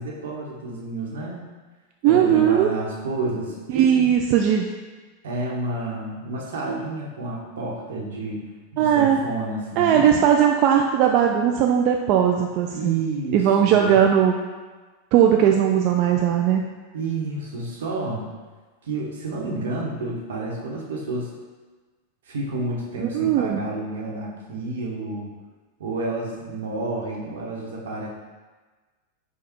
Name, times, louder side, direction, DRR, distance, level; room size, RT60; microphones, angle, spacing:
voice 1, 0.0-1.5 2.1-4.1 5.2-8.4 8.7-10.1 12.7-13.9 16.9-18.3 18.8-21.3 22.2-25.3 25.8-28.1, right 2 dB, 75° right, -2 dB, 1.0 m, -30 dB
voice 2, 2.0-2.7 3.7-4.7 8.8-9.2 9.8-13.0 13.3-14.4 15.1-16.7 23.0-23.6, right 9 dB, 50° right, 2 dB, 0.3 m, -18 dB
5.0 x 2.3 x 4.4 m, 1.3 s
hypercardioid pair, 100°, 0 cm